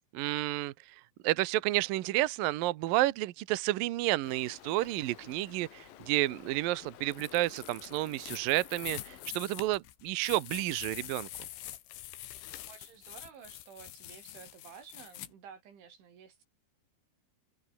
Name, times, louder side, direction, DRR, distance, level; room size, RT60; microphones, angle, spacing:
voice 1, 0.1-0.7 1.2-11.3, right 17 dB, 70° right, 2.2 m, -31 dB
Stream, 4.2-9.3, left 11 dB, 60° left, 3.0 m, -53 dB
sound 1, 7.1-15.3, left 14 dB, 90° left, 4.2 m, -45 dB
voice 2, 12.7-16.4, right 7 dB, 90° right, 6.9 m, -52 dB
omnidirectional pair, 5.3 m